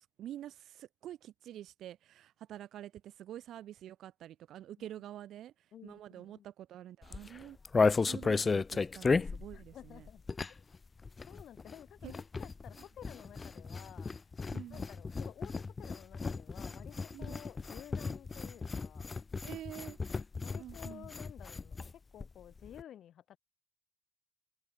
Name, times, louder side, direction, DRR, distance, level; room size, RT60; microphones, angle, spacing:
voice 1, 0.0-7.6 8.1-10.1 12.0-12.1 14.5-14.9 17.1-17.4 19.4-20.0 20.6-21.1, right 12 dB, 75° right, 2.2 m, -47 dB
voice 2, 5.7-6.5 9.5-10.2 10.5-10.6 11.3-14.1 14.7-19.1 20.4-23.4, left 10 dB, 70° left, 2.7 m, -53 dB
sound 1, 7.0-10.8 11.0-21.9 22.2-22.3 22.5-22.8, left 4 dB, 30° left, 0.3 m, -34 dB
cardioid pair, 90°, 0 cm